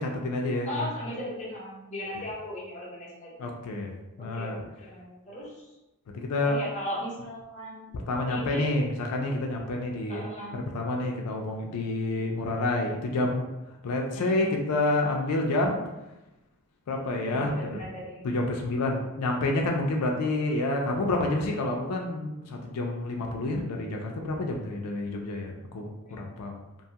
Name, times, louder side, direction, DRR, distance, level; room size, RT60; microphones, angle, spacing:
voice 1, 0.0-0.9 3.4-3.9 4.2-4.6 6.1-6.6 7.9-10.2 10.5-13.4 13.8-15.8 16.9-17.8 18.2-26.6, left 2 dB, 90° left, 1 dB, 0.4 m, -28 dB
voice 2, 0.6-3.3 4.2-5.7 6.4-7.9 8.3-8.6 10.1-10.6 14.1-14.6 17.3-18.3, equal, 35° left, -5 dB, 0.8 m, -37 dB
2.6 x 2.3 x 2.7 m, 1.0 s
head